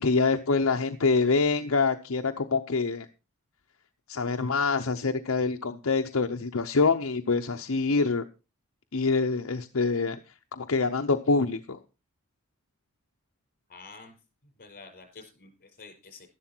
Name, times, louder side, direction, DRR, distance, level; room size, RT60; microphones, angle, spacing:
voice 1, 0.0-3.1 4.1-8.2 8.9-10.2 10.5-11.8, left 4 dB, 75° left, 5 dB, 0.8 m, -25 dB
voice 2, 13.7-14.1 14.6-16.3, left 4 dB, 45° left, 5 dB, 5.0 m, -48 dB
12.5 x 11.5 x 4.5 m, 0.31 s
head